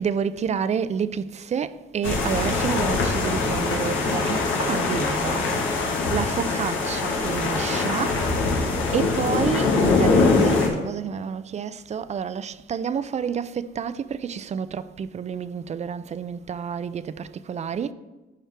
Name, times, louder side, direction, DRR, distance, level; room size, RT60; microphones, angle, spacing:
voice 1, 0.0-5.5 6.1-8.1 8.9-17.9, right 7 dB, 35° right, 0.4 m, -29 dB
sound 1, 2.0-10.7, left 3 dB, 90° left, 1.4 m, -23 dB
12.0 x 4.4 x 3.4 m
cardioid pair, 90°, 20 cm